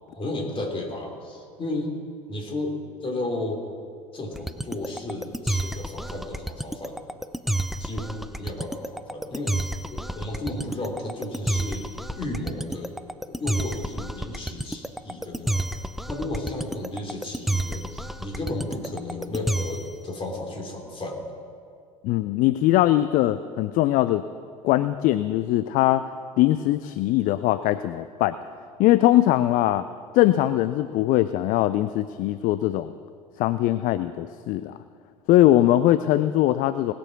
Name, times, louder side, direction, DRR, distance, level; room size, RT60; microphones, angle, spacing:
voice 1, 0.1-1.9 2.3-3.6 4.1-7.0 7.8-11.9 12.2-13.0 13.4-15.7 16.1-21.2, left 2 dB, 30° left, 2 dB, 3.2 m, -33 dB
sound 1, 4.4-20.0, right 1 dB, ahead, 0.6 m, -29 dB
voice 2, 22.0-24.2 24.6-26.1 26.4-28.4 28.8-29.9 30.1-32.9 33.4-34.8 35.3-36.9, left 14 dB, 45° left, 13 dB, 0.4 m, -21 dB
19.0 x 7.0 x 6.0 m, 2.2 s
figure-of-eight pair, 70°, 19 cm